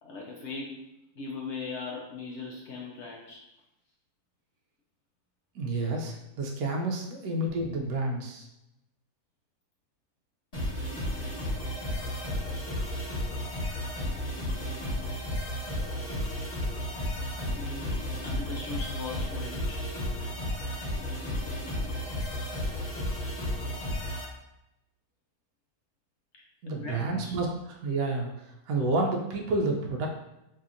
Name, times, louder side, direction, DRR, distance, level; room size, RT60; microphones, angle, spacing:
voice 1, 0.0-3.4 17.6-19.8 26.7-27.3, left 4 dB, 70° left, -2 dB, 0.6 m, -39 dB
voice 2, 5.5-8.5 26.6-30.1, right 2 dB, 70° right, 0 dB, 1.0 m, -30 dB
sound 1, 10.5-24.2, left 1 dB, 25° left, 1.6 m, -33 dB
4.0 x 2.8 x 2.5 m, 0.89 s
omnidirectional pair, 1.7 m